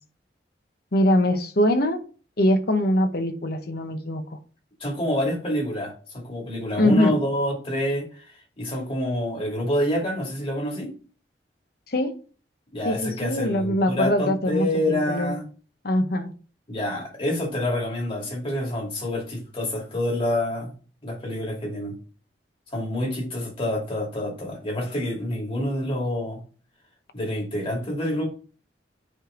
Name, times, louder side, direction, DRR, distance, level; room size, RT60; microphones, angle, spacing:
voice 1, 0.9-2.0 2.4-4.2 6.8-7.2 11.9-12.1 12.8-15.4 15.8-16.3, left 1 dB, 60° left, 7 dB, 1.0 m, -22 dB
voice 2, 4.8-8.2 8.6-10.9 12.7-15.4 16.7-20.7 21.0-22.0 22.7-26.4 27.1-28.3, left 1 dB, 30° left, -1 dB, 2.5 m, -27 dB
9.9 x 3.3 x 3.8 m, 0.38 s
head